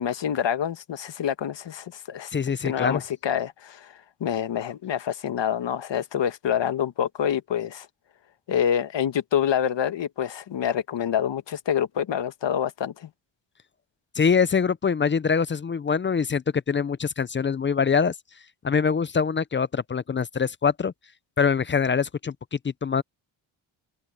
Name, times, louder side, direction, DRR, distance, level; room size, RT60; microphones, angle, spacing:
voice 1, 0.0-2.3 2.6-7.9 8.5-13.1, left 9 dB, 60° left, 1.4 m, -27 dB
voice 2, 2.3-3.0 14.2-18.1 18.6-20.9 21.4-23.0, left 6 dB, 25° left, 0.4 m, -24 dB
wide cardioid pair, 125°, 49 cm